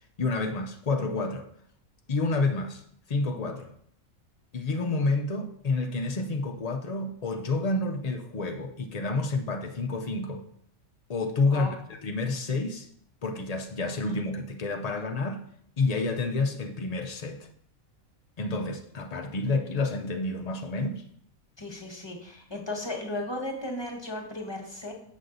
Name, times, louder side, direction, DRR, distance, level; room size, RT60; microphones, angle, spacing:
voice 1, 0.2-1.5 2.1-2.8 3.1-3.7 4.5-10.4 11.1-11.7 12.0-12.9 13.2-15.4 15.8-17.5 18.4-21.0, left 3 dB, 75° left, 0.3 m, -29 dB
voice 2, 21.6-24.9, left 1 dB, 20° left, 1.1 m, -35 dB
6.5 x 6.2 x 3.9 m
omnidirectional pair, 1.5 m